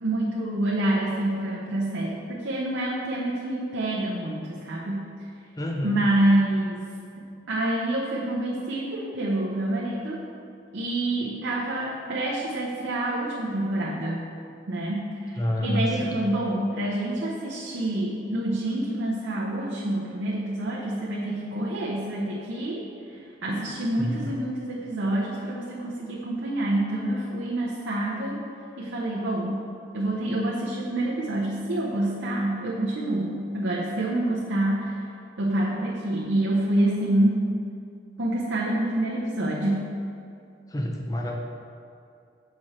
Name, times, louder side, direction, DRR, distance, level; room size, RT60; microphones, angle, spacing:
voice 1, 0.0-5.1 5.8-6.8 7.2-10.2 10.7-14.3 14.7-28.4 28.8-35.0 35.4-37.4 38.2-39.9, right 1 dB, 85° right, -5 dB, 0.8 m, -27 dB
voice 2, 5.6-6.0 15.4-16.2 24.0-24.2 40.7-41.4, left 1 dB, 20° left, 1 dB, 0.6 m, -28 dB
6.1 x 4.9 x 4.2 m, 2.5 s
head